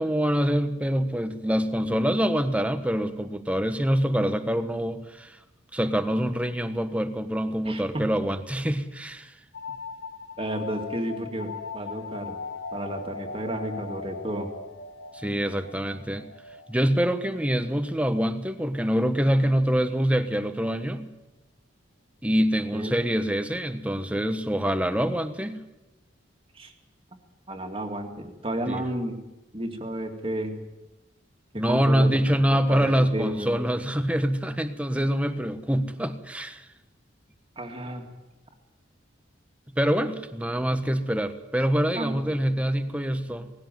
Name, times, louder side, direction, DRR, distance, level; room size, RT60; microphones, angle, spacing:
voice 1, 0.0-5.4 5.7-9.3 15.1-16.3 16.7-21.1 22.2-25.6 28.7-28.8 31.5-36.6 39.7-43.5, equal, 5° right, 9 dB, 1.3 m, -25 dB
voice 2, 7.6-8.0 10.4-12.4 12.7-14.5 22.7-23.0 26.5-26.7 27.5-29.2 29.5-30.6 31.5-33.6 37.6-38.0 41.9-42.3, right 1 dB, 30° right, 4 dB, 2.4 m, -32 dB
sound 1, 9.5-18.9, left 4 dB, 85° left, 1.5 m, -40 dB
19.5 x 16.5 x 9.3 m, 1.0 s
head